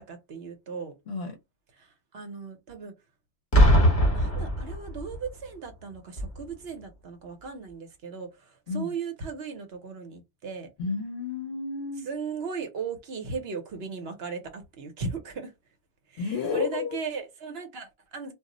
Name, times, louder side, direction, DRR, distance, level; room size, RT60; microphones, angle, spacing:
voice 1, 0.0-0.9 1.8-1.9 2.1-2.9 3.8-3.9 4.1-10.7 12.0-15.5 16.1-18.3, right 5 dB, 65° right, 0.9 m, -37 dB
voice 2, 1.1-1.4 8.7-8.9 10.8-12.1 16.2-17.0, left 5 dB, 65° left, 0.9 m, -31 dB
Boom, 3.5-5.3 6.2-6.4, equal, 35° left, 1.1 m, -21 dB
2.3 x 2.0 x 3.7 m
omnidirectional pair, 1.1 m